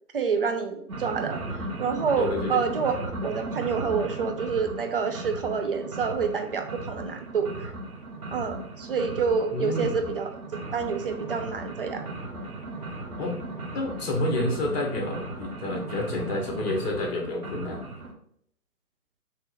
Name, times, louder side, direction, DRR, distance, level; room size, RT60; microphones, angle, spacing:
voice 1, 0.1-7.7 8.3-12.0, right 5 dB, 40° right, 5 dB, 0.4 m, -28 dB
sound 1, 0.9-18.1, right 2 dB, 70° right, 1.0 m, -37 dB
voice 2, 2.2-2.6 9.5-9.9 13.2-17.9, left 2 dB, 40° left, -1 dB, 1.3 m, -29 dB
3.7 x 3.0 x 3.1 m, 0.66 s
figure-of-eight pair, 135°, 45 cm